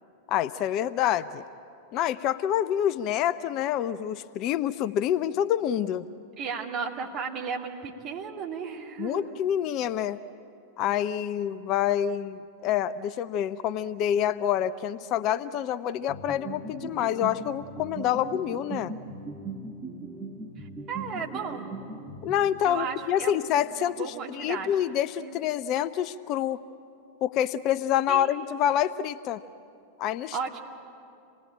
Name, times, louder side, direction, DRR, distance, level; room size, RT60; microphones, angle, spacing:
voice 1, 0.3-1.4 1.9-6.1 9.0-10.2 10.8-18.9 22.2-26.6 27.2-29.4 30.0-30.4, left 10 dB, 40° left, 15 dB, 0.5 m, -27 dB
voice 2, 6.4-9.4 20.6-21.7 22.6-24.8 25.2-25.3 28.1-28.3 30.3-30.6, right 6 dB, 35° right, 1 dB, 2.4 m, -35 dB
sound 1, 16.1-22.8, right 2 dB, 15° right, 1.9 m, -39 dB
27.0 x 19.0 x 8.8 m, 2.5 s
figure-of-eight pair, 90°, 0 cm